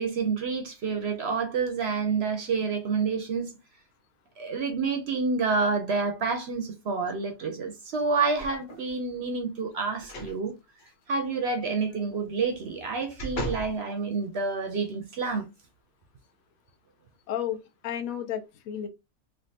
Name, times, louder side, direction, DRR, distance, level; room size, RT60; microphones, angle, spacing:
voice 1, 0.0-3.5 4.4-10.5 11.1-15.5, right 4 dB, 60° right, 0.7 m, -28 dB
sound 1, 8.4-8.9 10.0-10.4 10.8-10.9 12.5-13.7 14.3-14.4, equal, 45° left, 0.7 m, -37 dB
voice 2, 17.3-18.9, left 10 dB, 75° left, 1.1 m, -32 dB
3.3 x 2.4 x 2.6 m
omnidirectional pair, 1.5 m